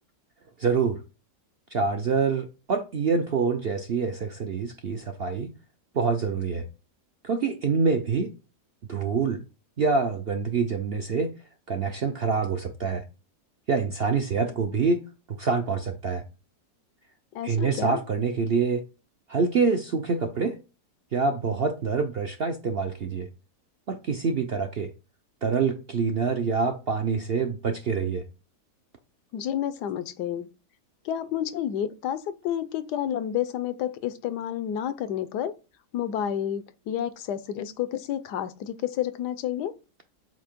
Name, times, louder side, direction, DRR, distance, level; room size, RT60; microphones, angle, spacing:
voice 1, 0.6-1.0 1.7-5.5 5.9-6.7 7.2-8.3 8.9-9.4 9.8-11.3 11.7-13.0 13.7-15.0 15.3-16.2 17.4-18.8 19.3-20.6 21.1-23.3 23.9-24.9 25.4-28.3, right 5 dB, 60° right, 0.6 m, -26 dB
voice 2, 17.3-18.0 29.3-30.5 31.0-35.5 35.9-39.7, left 10 dB, 80° left, 1.2 m, -30 dB
8.0 x 2.8 x 5.1 m
omnidirectional pair, 1.8 m